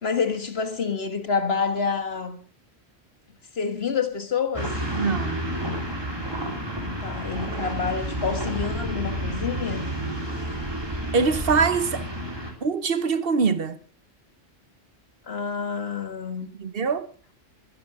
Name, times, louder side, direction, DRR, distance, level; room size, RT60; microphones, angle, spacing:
voice 1, 0.0-2.4 3.6-4.8 7.0-9.9 15.3-16.5, left 5 dB, 70° left, 2.0 m, -28 dB
sound 1, 4.5-12.5, right 1 dB, 20° right, 3.7 m, -30 dB
voice 2, 4.9-5.4 11.1-12.1 12.6-13.8 16.6-17.1, right 5 dB, 60° right, 1.2 m, -23 dB
23.0 x 11.0 x 4.8 m
omnidirectional pair, 1.1 m